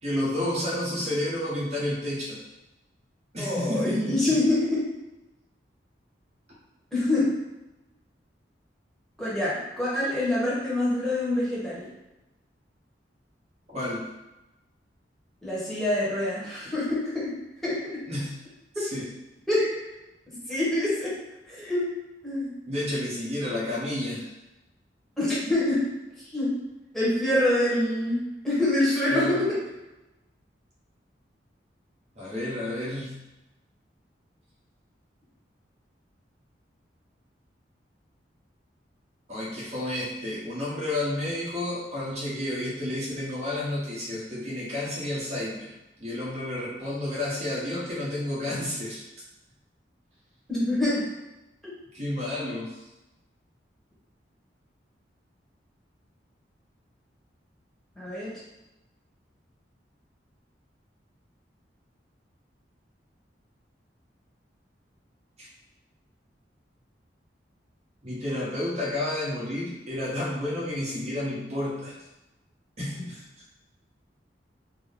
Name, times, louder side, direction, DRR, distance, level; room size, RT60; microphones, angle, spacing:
voice 1, 0.0-2.4 3.3-4.3 13.7-14.1 18.1-18.4 18.7-19.1 22.7-24.3 29.1-29.4 32.2-33.1 39.3-49.0 51.9-52.7 65.4-65.5 68.0-71.9 72.8-73.2, left 1 dB, 40° right, -7 dB, 1.2 m, -31 dB
voice 2, 3.4-4.9 6.9-7.3 9.2-11.9 15.4-17.3 17.6-18.0 18.7-18.9 19.5-19.7 20.5-21.1 21.5-21.9 22.2-22.5 25.2-25.9 26.3-26.6 26.9-29.6 50.5-51.0 58.0-58.3, left 1 dB, ahead, -8 dB, 1.1 m, -25 dB
3.7 x 2.1 x 3.6 m, 0.99 s
head